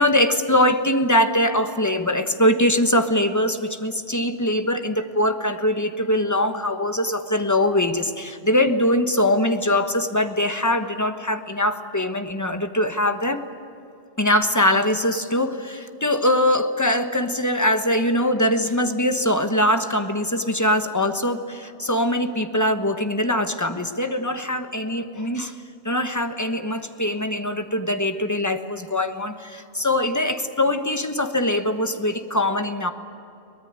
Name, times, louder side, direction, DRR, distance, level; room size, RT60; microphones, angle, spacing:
voice 1, 0.0-13.4 14.2-25.5 25.8-32.9, left 1 dB, 15° left, 7 dB, 1.2 m, -22 dB
23.5 x 19.5 x 9.0 m, 2.7 s
omnidirectional pair, 1.2 m